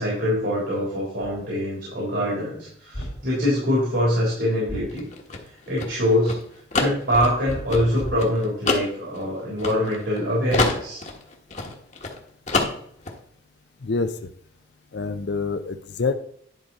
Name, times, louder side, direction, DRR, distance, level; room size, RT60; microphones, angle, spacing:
voice 1, 0.0-5.1 5.7-6.4 6.8-11.0, equal, 65° right, -6 dB, 3.6 m, -24 dB
sound 1, 1.2-1.4 2.9-3.3 4.7-5.0 7.1-8.4, equal, 75° left, 2.4 m, -35 dB
sound 2, 4.9-10.2 10.5-12.2 12.5-13.2, left 3 dB, 35° left, 1.2 m, -27 dB
voice 2, 13.8-14.2 14.9-16.1, left 4 dB, 55° left, 9 dB, 0.5 m, -26 dB
10.5 x 5.1 x 4.2 m, 0.65 s
head